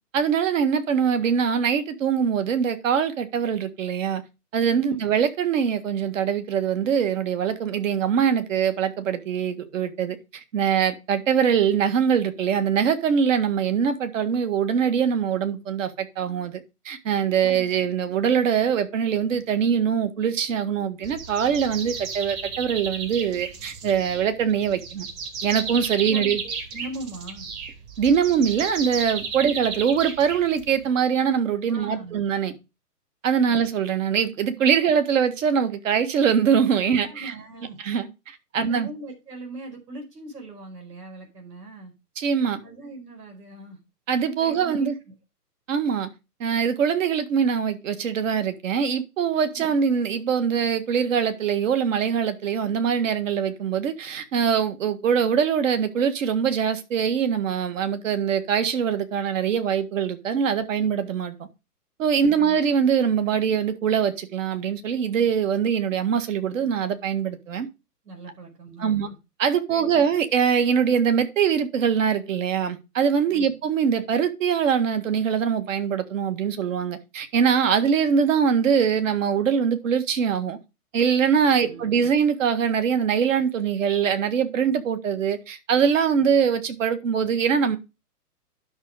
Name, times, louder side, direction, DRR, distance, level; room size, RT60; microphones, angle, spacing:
voice 1, 0.1-4.2 4.5-25.1 25.4-26.4 28.0-32.5 33.2-37.3 37.8-38.9 42.2-42.6 44.1-44.9 45.7-46.1 46.4-61.4 62.0-67.7 68.8-69.1 69.4-80.6 80.9-87.8, right 7 dB, 55° right, 1.8 m, -23 dB
sound 1, 21.0-30.9, right 5 dB, 20° right, 1.5 m, -34 dB
voice 2, 26.0-27.5 29.4-29.5 31.7-32.2 32.5-32.6 33.5-33.6 37.0-37.8 38.5-41.9 42.6-43.8 44.4-44.9 49.5-49.8 62.1-62.5 68.0-69.2 69.7-70.0 73.3-73.5 81.6-82.1, right 2 dB, 90° right, 5.0 m, -40 dB
11.0 x 6.3 x 4.8 m
hypercardioid pair, 155°, 47 cm